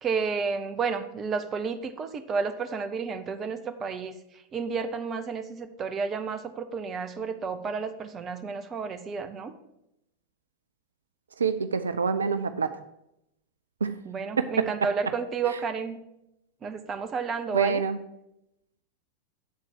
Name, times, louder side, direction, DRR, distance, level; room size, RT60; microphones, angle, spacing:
voice 1, 0.0-9.5 12.8-12.9 14.0-16.0 16.6-17.8, right 5 dB, 25° right, 9 dB, 0.6 m, -31 dB
voice 2, 11.4-12.7 13.8-13.9 17.5-18.0, right 5 dB, 70° right, 10 dB, 0.3 m, -26 dB
8.3 x 4.0 x 6.3 m, 0.84 s
figure-of-eight pair, 90°, 0 cm